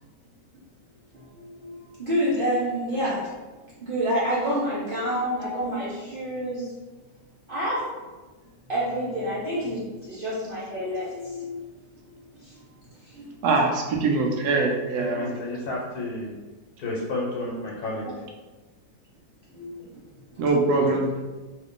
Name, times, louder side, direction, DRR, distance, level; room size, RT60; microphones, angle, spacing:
voice 1, 1.1-3.3 3.8-6.7 7.5-7.9 8.7-11.6 12.1-12.7 13.0-13.4 18.0-18.1 19.5-19.7 20.3-20.5, equal, 60° right, -8 dB, 0.5 m, -28 dB
voice 2, 13.4-15.3 20.4-21.1, right 3 dB, 75° right, 1 dB, 1.1 m, -23 dB
voice 3, 15.0-16.3 16.8-18.1 20.9-21.0, left 2 dB, 65° left, -4 dB, 1.3 m, -31 dB
3.1 x 2.4 x 3.6 m, 1.3 s
omnidirectional pair, 1.8 m